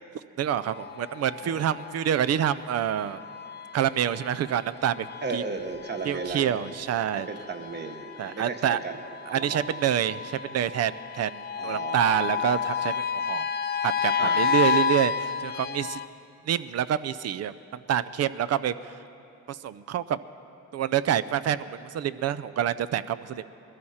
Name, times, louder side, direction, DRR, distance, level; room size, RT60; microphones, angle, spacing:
voice 1, 0.4-3.2 3.7-5.1 5.3-5.4 6.0-7.3 8.2-8.8 9.3-13.5 13.8-16.0 16.4-18.9 19.5-20.2 20.7-23.5, right 10 dB, 55° right, 15 dB, 0.5 m, -27 dB
sound 1, 0.6-16.0, left 6 dB, 35° left, 0.5 m, -31 dB
voice 2, 1.4-1.8 5.2-6.7 7.1-9.0 9.3-9.7 11.5-12.4 14.2-14.5, right 4 dB, 35° right, 6 dB, 1.3 m, -35 dB
20.5 x 13.5 x 4.3 m, 2.7 s
cardioid pair, 90°, 30 cm